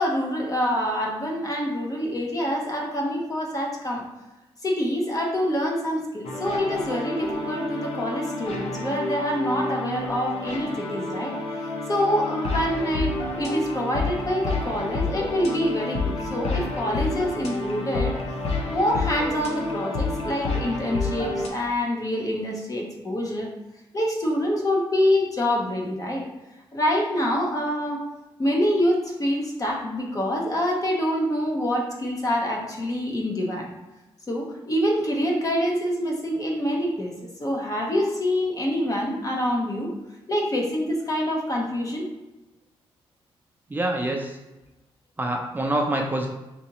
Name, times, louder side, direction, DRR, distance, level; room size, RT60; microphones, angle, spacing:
voice 1, 0.0-4.0 4.6-11.3 11.9-18.2 18.7-23.5 23.9-26.2 26.7-28.0 28.4-33.7 34.3-37.1 37.4-39.9 40.3-42.1, equal, 35° left, 0 dB, 0.9 m, -26 dB
sound 1, 6.2-21.5, left 2 dB, 80° left, 0.6 m, -29 dB
voice 2, 43.7-44.4 45.2-46.3, right 1 dB, 20° right, 1 dB, 0.5 m, -26 dB
4.0 x 2.9 x 2.9 m, 1.0 s
cardioid pair, 75°, 10 cm